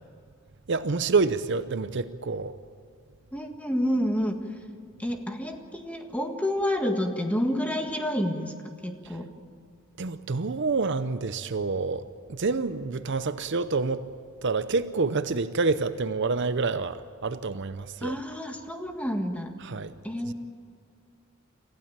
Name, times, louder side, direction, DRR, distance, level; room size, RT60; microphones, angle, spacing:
voice 1, 0.7-2.5 10.0-14.0 14.4-18.2 19.6-19.9 20.2-20.3, right 4 dB, 55° right, 12 dB, 0.7 m, -28 dB
voice 2, 3.3-4.4 5.0-9.3 18.0-19.5 20.0-20.3, equal, 5° left, 4 dB, 1.7 m, -29 dB
26.5 x 15.5 x 8.9 m, 2.3 s
head